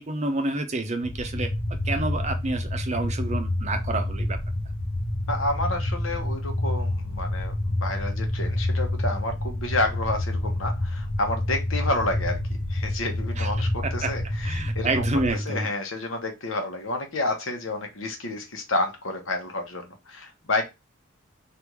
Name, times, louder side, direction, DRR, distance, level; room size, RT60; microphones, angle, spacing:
voice 1, 0.0-1.5 1.8-4.4 13.4-13.5 13.8-14.1 14.4-15.7, right 2 dB, 35° right, 7 dB, 0.6 m, -28 dB
sound 1, 1.0-15.3, left 1 dB, 35° left, 0.7 m, -28 dB
voice 2, 5.3-12.4 12.7-15.1 15.5-20.6, left 2 dB, 75° left, 4 dB, 1.1 m, -30 dB
3.4 x 2.6 x 4.5 m, 0.23 s
head